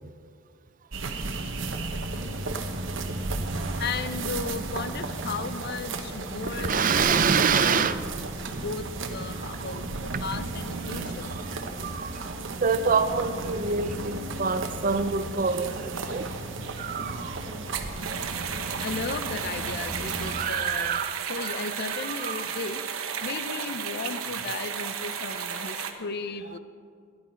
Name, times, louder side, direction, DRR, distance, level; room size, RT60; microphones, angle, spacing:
sound 1, 0.9-20.5, right 3 dB, 60° right, 1.0 m, -34 dB
voice 1, 2.6-3.0 3.5-3.8 6.4-8.0 9.5-9.8 10.1-10.4 10.8-16.3 16.7-17.5 17.9-18.3 20.2-22.5, right 5 dB, 40° right, 11 dB, 0.6 m, -28 dB
voice 2, 3.8-7.0 7.4-7.9 8.4-11.4 18.1-21.0 21.3-26.6, left 4 dB, 50° left, 12 dB, 0.6 m, -35 dB
sound 2, 18.0-25.9, right 7 dB, 85° right, 1.0 m, -33 dB
16.0 x 10.5 x 4.5 m, 2.2 s
head